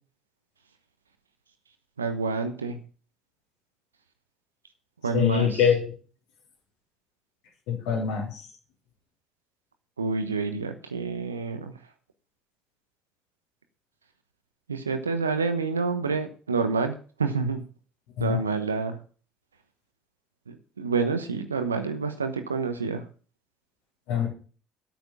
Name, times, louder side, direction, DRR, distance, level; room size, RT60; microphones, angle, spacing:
voice 1, 2.0-2.8 5.0-5.6 10.0-11.7 14.7-17.6 18.2-19.0 20.5-23.0, right 4 dB, 85° right, 8 dB, 1.0 m, -28 dB
voice 2, 5.1-5.9 7.7-8.4 18.2-18.4 24.1-24.3, left 8 dB, 70° left, -3 dB, 4.0 m, -24 dB
8.6 x 8.1 x 8.3 m, 0.39 s
figure-of-eight pair, 55°, 0 cm